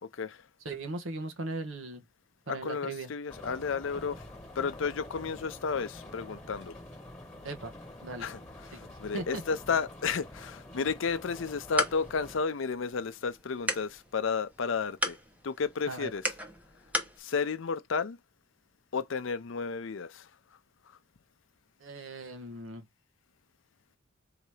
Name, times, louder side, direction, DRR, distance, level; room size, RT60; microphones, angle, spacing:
voice 1, 0.0-0.4 2.5-4.3 4.6-6.8 8.2-15.2 15.4-16.2 17.2-18.2 18.9-20.3, left 5 dB, 65° left, 0.5 m, -32 dB
voice 2, 0.6-2.0 2.5-3.1 7.4-7.7 8.0-8.3 8.7-8.9 9.1-9.4 15.9-16.1 21.8-22.9, right 2 dB, 70° right, 1.1 m, -38 dB
sound 1, 3.3-12.4, left 1 dB, 10° left, 1.6 m, -47 dB
sound 2, 11.3-17.2, equal, 5° right, 0.8 m, -37 dB
3.9 x 2.8 x 4.7 m
head